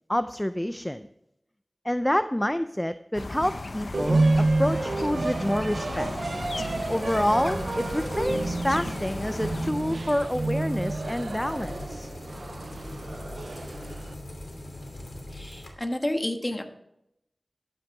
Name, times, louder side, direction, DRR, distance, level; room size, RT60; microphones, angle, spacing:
voice 1, 0.1-1.1 1.8-6.1 6.9-12.1, left 1 dB, 10° left, 11 dB, 0.5 m, -28 dB
sound 1, 3.1-9.7, left 2 dB, 65° left, 0.6 m, -36 dB
sound 2, 3.9-14.1, right 2 dB, 80° right, 0.4 m, -29 dB
sound 3, 6.4-15.7, left 1 dB, 80° left, 2.8 m, -39 dB
voice 2, 15.3-16.6, left 1 dB, 25° left, 5 dB, 1.4 m, -30 dB
11.5 x 9.0 x 4.7 m, 0.82 s
wide cardioid pair, 65°, 0 cm